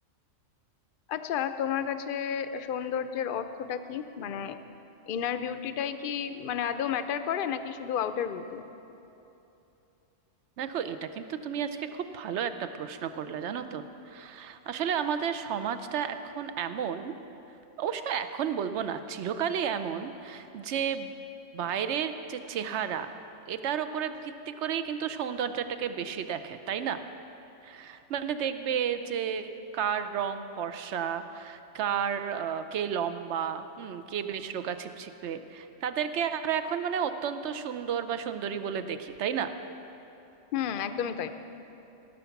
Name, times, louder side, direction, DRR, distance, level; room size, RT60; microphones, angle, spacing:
voice 1, 1.1-4.6 5.1-8.6 40.5-41.3, left 8 dB, 55° left, 11 dB, 0.6 m, -31 dB
voice 2, 10.6-17.1 17.8-21.1 21.5-23.1 23.5-27.0 27.6-39.5, right 8 dB, 70° right, 10 dB, 0.9 m, -32 dB
17.5 x 7.2 x 5.9 m, 2.9 s
omnidirectional pair, 1.3 m